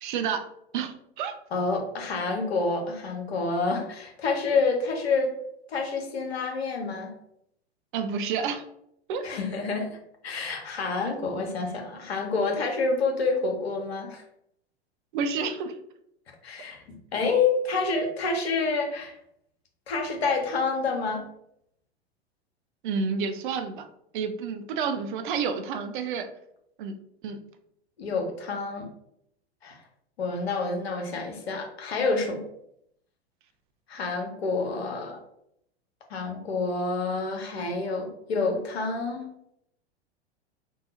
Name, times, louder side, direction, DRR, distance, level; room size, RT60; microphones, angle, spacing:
voice 1, 0.0-0.4 0.7-1.3 7.9-8.7 9.1-9.3 15.1-15.7 22.8-23.9 24.1-26.3 26.8-26.9 27.2-27.4, right 6 dB, 50° right, 8 dB, 0.5 m, -29 dB
voice 2, 1.5-5.3 5.7-7.1 9.2-10.0 10.2-14.2 16.4-16.8 17.1-19.2 19.9-21.2 28.0-28.9 29.6-29.8 30.2-32.5 33.9-35.2 36.1-39.3, left 4 dB, 70° left, 2 dB, 1.0 m, -28 dB
2.8 x 2.3 x 4.1 m, 0.74 s
figure-of-eight pair, 90°, 33 cm